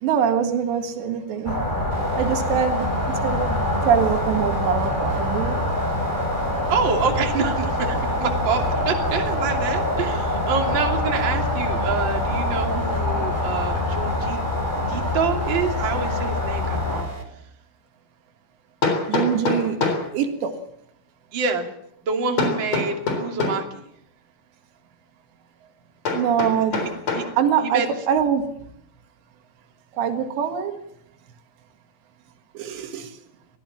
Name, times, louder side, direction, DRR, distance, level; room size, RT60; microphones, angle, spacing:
voice 1, 0.0-1.6 2.1-3.6 3.9-5.6 19.1-19.8 20.1-20.6 26.1-26.9 27.4-28.6 30.0-30.8 32.6-33.1, right 8 dB, 85° right, 6 dB, 4.1 m, -23 dB
sound 1, 1.4-17.0, left 1 dB, 10° left, 4.1 m, -25 dB
sound 2, 1.9-17.4, right 2 dB, 15° right, 3.0 m, -35 dB
voice 2, 6.7-14.4 14.9-17.1 21.3-21.7 22.0-23.8 26.7-26.8 27.1-27.2 27.6-27.9, right 5 dB, 30° right, 3 dB, 2.8 m, -27 dB
Hammer, 17.2-17.3 18.8-20.1 22.4-23.7 26.0-27.3, left 3 dB, 40° left, 4.8 m, -24 dB
22.5 x 17.0 x 7.4 m, 0.73 s
omnidirectional pair, 4.9 m